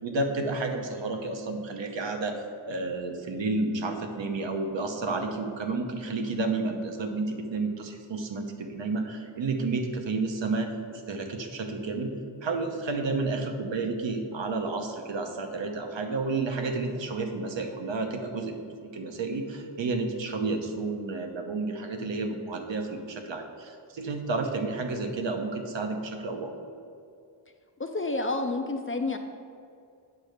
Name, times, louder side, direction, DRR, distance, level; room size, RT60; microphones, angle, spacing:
voice 1, 0.0-2.4 2.6-12.1 12.4-18.6 18.9-26.5, right 3 dB, 75° right, 4 dB, 0.9 m, -31 dB
voice 2, 27.8-29.2, left 2 dB, 30° left, 5 dB, 0.4 m, -29 dB
8.5 x 3.2 x 6.5 m, 2.3 s
wide cardioid pair, 135°, 45 cm